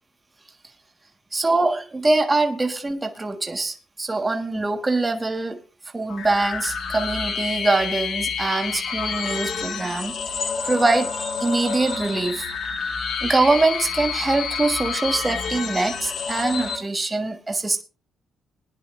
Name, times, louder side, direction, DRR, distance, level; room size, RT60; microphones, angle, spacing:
voice 1, 1.3-5.6 5.9-10.1 10.4-17.8, right 2 dB, 20° right, 1.4 m, -23 dB
sound 1, 6.1-16.8, left 6 dB, 65° left, 2.5 m, -29 dB
20.5 x 10.5 x 2.5 m
cardioid pair, 90°, 0 cm